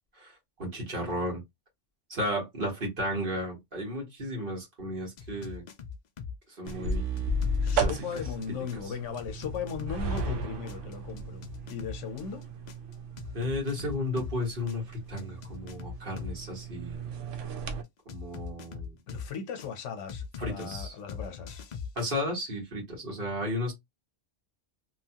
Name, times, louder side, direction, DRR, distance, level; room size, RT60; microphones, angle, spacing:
voice 1, 0.1-1.4 2.1-5.6 6.5-7.1 7.8-8.0 13.3-14.8 15.1-17.0 18.0-19.0 20.4-20.9 21.9-23.7, left 1 dB, 50° right, 1.5 m, -33 dB
sound 1, 5.2-6.4 6.7-10.4 10.7-14.4 14.7-16.4 18.1-19.7 20.1-22.0, left 6 dB, 65° left, 0.4 m, -40 dB
sound 2, 6.6-17.8, right 2 dB, 85° right, 1.0 m, -35 dB
voice 2, 7.6-12.5 19.1-21.6, left 7 dB, 80° left, 1.0 m, -37 dB
2.9 x 2.2 x 2.8 m
omnidirectional pair, 1.2 m